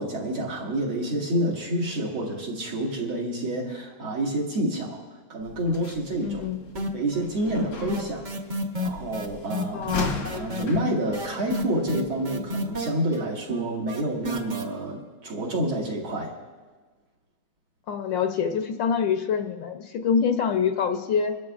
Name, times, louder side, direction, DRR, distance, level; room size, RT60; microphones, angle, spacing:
voice 1, 0.0-6.4 6.9-8.3 8.8-9.8 10.3-16.3, right 1 dB, 75° right, -3 dB, 2.9 m, -28 dB
sound 1, 5.4-12.7, left 2 dB, 90° left, 2.3 m, -38 dB
voice 2, 6.2-6.6 9.7-10.2 17.9-21.4, left 6 dB, 70° left, 6 dB, 1.3 m, -25 dB
sound 2, 6.7-7.2 7.5-14.6, equal, 40° right, 0.6 m, -31 dB
27.0 x 12.0 x 2.4 m, 1.4 s
omnidirectional pair, 2.3 m